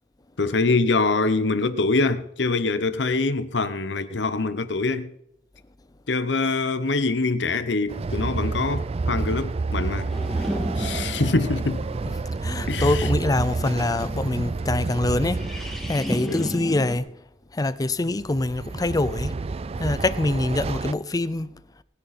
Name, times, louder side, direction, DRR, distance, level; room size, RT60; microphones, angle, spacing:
voice 1, 0.4-5.1 6.1-10.1 10.8-11.8 12.7-13.1 16.2-16.5, left 3 dB, 80° left, 0.9 m, -24 dB
Train, 7.9-16.4 18.2-20.9, right 3 dB, 35° right, 0.4 m, -29 dB
sound 1, 10.1-17.0, equal, ahead, 2.1 m, -35 dB
voice 2, 12.4-15.4 15.9-17.1 17.5-19.4 19.8-21.6, left 2 dB, 20° left, 0.5 m, -24 dB
19.5 x 9.8 x 4.2 m
head